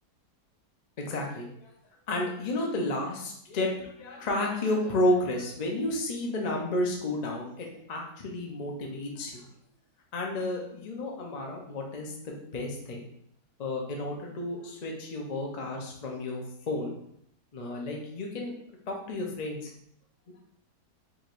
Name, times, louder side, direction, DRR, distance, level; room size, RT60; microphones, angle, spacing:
voice 1, 1.0-1.7 2.1-9.5 10.1-13.0 13.6-16.9 17.5-18.5 18.9-19.7, left 1 dB, 65° left, 0 dB, 0.4 m, -31 dB
5.0 x 3.1 x 2.5 m, 0.69 s
omnidirectional pair, 1.8 m